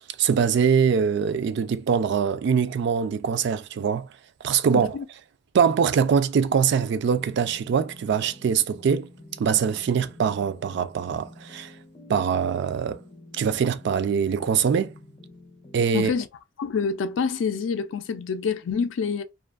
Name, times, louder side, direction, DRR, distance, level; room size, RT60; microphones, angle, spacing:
voice 1, 0.2-4.1 4.4-5.0 5.5-9.1 9.4-11.7 12.1-13.0 13.3-14.9 15.7-16.1, right 6 dB, 60° right, 0.3 m, -23 dB
voice 2, 4.7-5.1 15.9-16.3 16.6-19.2, left 5 dB, 75° left, 0.4 m, -27 dB
sound 1, 7.1-15.8, left 1 dB, 30° left, 0.5 m, -49 dB
2.5 x 2.4 x 2.3 m
head